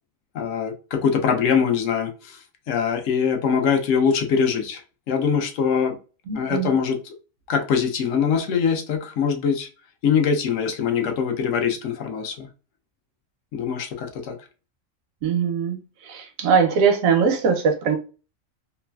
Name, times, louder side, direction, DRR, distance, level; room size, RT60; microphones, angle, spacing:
voice 1, 0.3-2.4 2.7-4.8 5.1-6.0 6.3-7.1 7.5-9.7 10.0-12.5 13.5-14.4, left 6 dB, 75° left, 0.9 m, -23 dB
voice 2, 6.3-6.7 15.2-15.8 16.0-18.0, right 6 dB, 85° right, 1.0 m, -21 dB
3.1 x 2.3 x 2.2 m
omnidirectional pair, 1.4 m